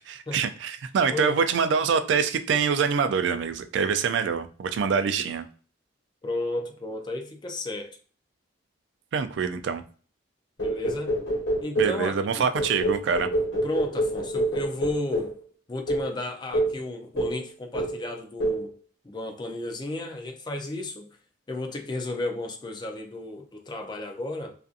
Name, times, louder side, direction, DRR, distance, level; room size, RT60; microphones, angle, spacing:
voice 1, 0.0-5.4 9.1-9.8 11.8-13.3, right 6 dB, 65° right, 0.3 m, -25 dB
voice 2, 6.2-8.0 10.6-11.1 11.6-12.5 13.6-15.3 15.7-18.7 19.0-21.1 21.5-24.5, left 2 dB, 20° left, 0.3 m, -33 dB
sound 1, 10.6-12.0 12.5-15.4 15.9-16.1 16.5-16.8 17.2-17.5 17.7-18.0 18.4-18.7, right 1 dB, 65° left, 1.1 m, -27 dB
2.6 x 2.5 x 2.4 m
head